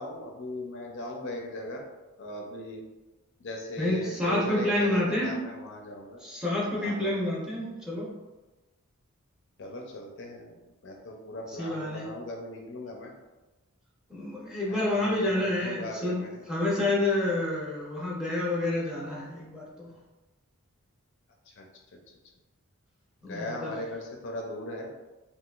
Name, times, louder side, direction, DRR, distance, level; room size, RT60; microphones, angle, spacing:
voice 1, 0.0-1.8 2.2-2.8 3.4-6.2 6.8-7.1 9.6-10.5 10.8-13.1 14.7-16.4 21.5-21.6 23.2-24.9, left 1 dB, 55° left, 1 dB, 0.4 m, -38 dB
voice 2, 3.8-5.3 6.2-8.1 11.5-12.1 14.1-19.9 23.2-23.7, left 1 dB, 5° right, -5 dB, 0.7 m, -29 dB
3.7 x 2.4 x 2.4 m, 1.1 s
head